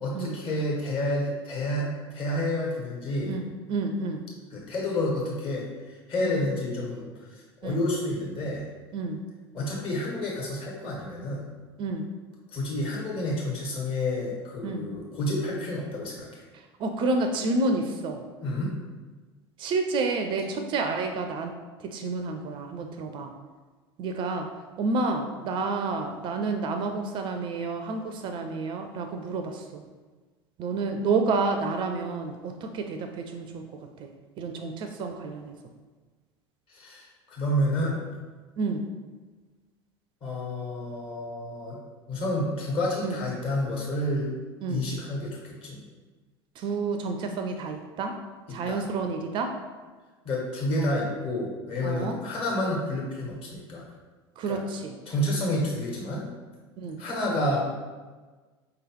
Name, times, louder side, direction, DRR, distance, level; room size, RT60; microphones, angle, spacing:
voice 1, 0.0-3.3 4.5-8.6 9.5-11.4 12.5-16.4 18.4-18.7 36.7-38.0 40.2-41.8 42.1-44.3 44.7-45.8 48.7-48.8 50.2-53.8 54.5-54.6 55.1-56.3 57.0-57.6, left 1 dB, 45° left, -3 dB, 1.4 m, -29 dB
voice 2, 3.3-4.2 6.2-6.4 7.6-7.8 8.9-9.2 11.8-12.1 14.6-14.9 16.5-18.2 19.6-21.5 21.8-23.3 24.0-24.5 24.8-29.9 30.6-34.1 34.4-35.6 38.6-38.9 43.0-43.2 44.6-44.9 46.6-48.2 48.5-49.5 50.8-50.9 51.8-52.2 54.4-55.0 56.8-57.0, right 3 dB, 35° right, 6 dB, 0.4 m, -30 dB
4.8 x 3.0 x 3.0 m, 1.3 s
figure-of-eight pair, 70°, 13 cm